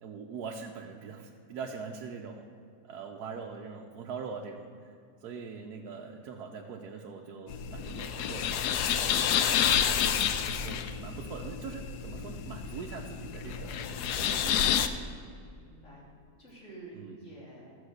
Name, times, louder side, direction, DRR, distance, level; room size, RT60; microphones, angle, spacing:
voice 1, 0.0-2.5 2.8-4.6 5.2-8.7 9.3-10.2 10.6-13.9 14.1-14.8 17.0-17.2, right 5 dB, 75° right, 0 dB, 1.3 m, -42 dB
sound 1, 7.5-14.9, left 8 dB, 80° left, 1.2 m, -29 dB
voice 2, 15.6-16.1 16.4-17.7, right 2 dB, 50° left, -6 dB, 3.6 m, -49 dB
13.0 x 7.1 x 6.5 m, 2.3 s
omnidirectional pair, 1.7 m